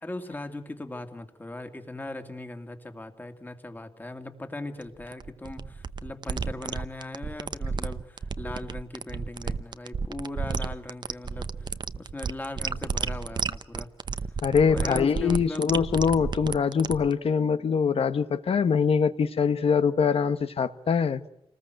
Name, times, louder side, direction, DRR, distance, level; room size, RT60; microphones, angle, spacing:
voice 1, 0.0-13.9 14.6-15.7, left 2 dB, 20° left, 2.4 m, -39 dB
sound 1, 4.8-17.1, right 5 dB, 50° right, 0.9 m, -32 dB
voice 2, 14.4-21.2, left 6 dB, 75° left, 1.4 m, -23 dB
29.0 x 20.0 x 7.8 m
wide cardioid pair, 165°, 10 cm